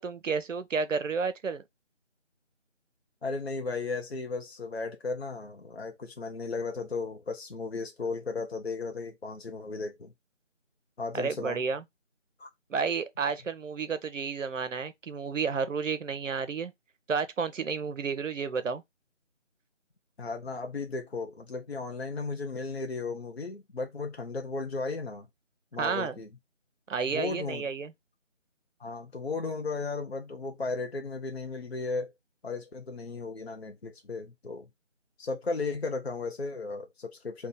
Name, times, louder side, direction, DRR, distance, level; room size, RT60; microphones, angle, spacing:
voice 1, 0.0-1.6 11.1-11.8 12.7-16.7 17.1-18.8 25.8-26.1 26.9-27.9, right 5 dB, 90° right, 0.6 m, -31 dB
voice 2, 3.2-10.1 11.0-11.6 12.4-12.5 20.2-25.3 25.7-26.3 27.1-27.7 28.8-32.1 32.4-34.7 35.2-37.5, left 3 dB, 55° left, 0.5 m, -35 dB
2.7 x 2.0 x 3.8 m
figure-of-eight pair, 170°, 37 cm